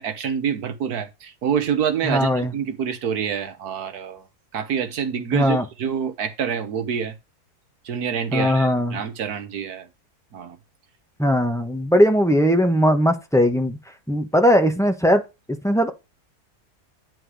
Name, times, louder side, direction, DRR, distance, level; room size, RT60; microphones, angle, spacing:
voice 1, 0.0-4.3 4.5-7.1 7.8-9.9 10.3-10.6, right 7 dB, 70° right, 1.6 m, -27 dB
voice 2, 2.1-2.5 5.3-5.6 8.3-9.0 11.2-13.8 14.1-15.2 15.6-15.9, equal, ahead, 0.8 m, -19 dB
10.0 x 4.3 x 4.9 m
omnidirectional pair, 1.7 m